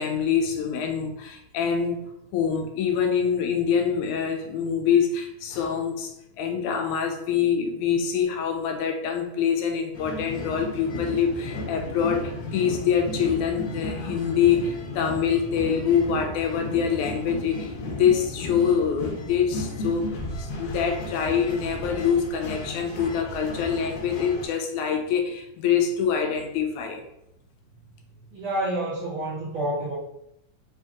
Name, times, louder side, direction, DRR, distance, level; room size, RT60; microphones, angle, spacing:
voice 1, 0.0-2.0 2.3-27.0, left 7 dB, 85° left, 4 dB, 2.0 m, -25 dB
sound 1, 9.9-24.5, left 2 dB, 65° left, 1.8 m, -34 dB
voice 2, 28.3-29.9, right 1 dB, 65° right, -7 dB, 1.3 m, -28 dB
5.0 x 2.7 x 3.5 m, 0.81 s
omnidirectional pair, 3.5 m